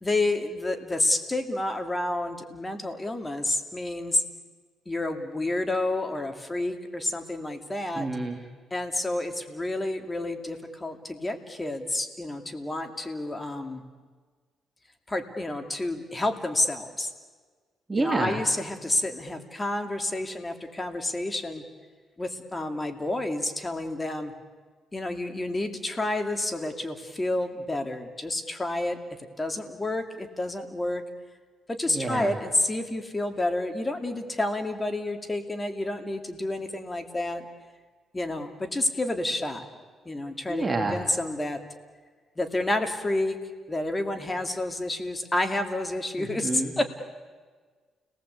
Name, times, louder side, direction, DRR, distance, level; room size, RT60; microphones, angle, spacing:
voice 1, 0.0-4.2 4.9-8.1 8.7-13.8 15.1-17.1 18.0-21.6 22.2-24.3 24.9-29.0 29.4-31.0 31.7-37.5 38.1-39.7 40.0-41.6 42.4-43.4 43.7-47.0, left 2 dB, 20° left, 6 dB, 2.7 m, -29 dB
voice 2, 7.9-8.4 17.9-18.4 31.9-32.3 40.5-41.0 46.2-46.7, right 2 dB, 20° right, 1 dB, 2.8 m, -28 dB
30.0 x 19.0 x 8.4 m, 1.5 s
cardioid pair, 90°, 0 cm